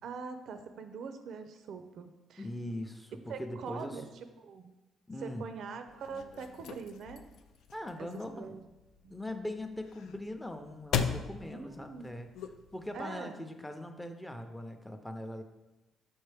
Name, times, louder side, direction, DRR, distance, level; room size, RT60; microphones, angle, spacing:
voice 1, 0.0-2.5 3.3-4.1 4.4-4.7 5.2-7.2 8.0-8.1 8.3-8.6 9.0-9.2 11.5-12.1 12.9-13.3, right 5 dB, 70° right, 8 dB, 0.4 m, -43 dB
voice 2, 2.4-4.0 5.1-5.5 7.7-8.6 9.1-12.3 12.7-15.4, left 1 dB, 10° left, 6 dB, 0.6 m, -41 dB
sound 1, 5.9-13.0, left 7 dB, 80° left, 0.3 m, -39 dB
6.3 x 4.4 x 3.4 m, 1.0 s
cardioid pair, 90°, 0 cm